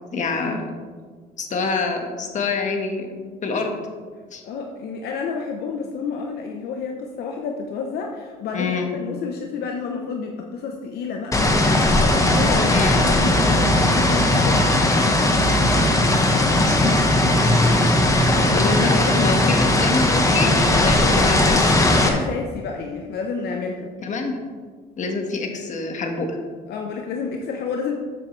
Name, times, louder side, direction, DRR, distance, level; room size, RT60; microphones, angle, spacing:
voice 1, 0.1-0.7 1.4-3.1 3.4-3.8 4.3-4.4 8.5-8.9 12.7-13.0 16.6-17.0 18.6-18.9 19.2-21.6 24.0-24.4 25.0-26.4, left 4 dB, 45° left, 3 dB, 1.6 m, -26 dB
voice 2, 4.4-15.4 17.7-18.0 18.3-19.7 20.0-23.9 26.7-27.9, left 5 dB, 70° left, 2 dB, 1.0 m, -30 dB
sound 1, 11.3-22.1, left 1 dB, 20° left, 1.3 m, -18 dB
13.5 x 7.5 x 3.3 m, 1.5 s
cardioid pair, 110°, 17 cm